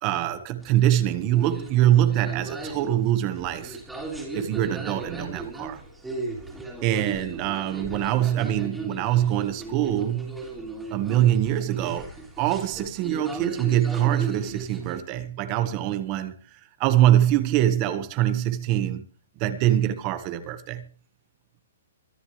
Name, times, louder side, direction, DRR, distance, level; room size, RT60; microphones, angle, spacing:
voice 1, 0.0-3.8 4.3-5.8 6.8-10.4 10.9-19.0 19.4-20.8, right 12 dB, 25° right, 1.4 m, -24 dB
sound 1, 0.6-15.0, right 2 dB, ahead, 3.7 m, -37 dB
24.5 x 11.0 x 3.3 m
hypercardioid pair, 170°, 0 cm